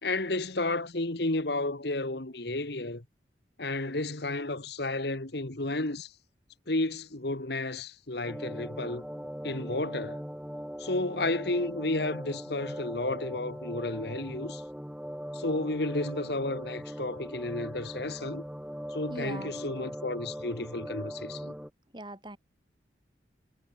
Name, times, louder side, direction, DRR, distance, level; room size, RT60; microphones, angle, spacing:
voice 1, 0.0-3.0 3.6-6.1 6.7-9.0 9.4-10.2 10.8-14.6 15.3-18.4 18.9-21.5, left 2 dB, 60° left, 1.7 m, -32 dB
sound 1, 8.2-21.7, equal, 5° right, 3.9 m, -40 dB
voice 2, 19.1-19.5 21.9-22.4, right 1 dB, 25° right, 7.3 m, -40 dB
head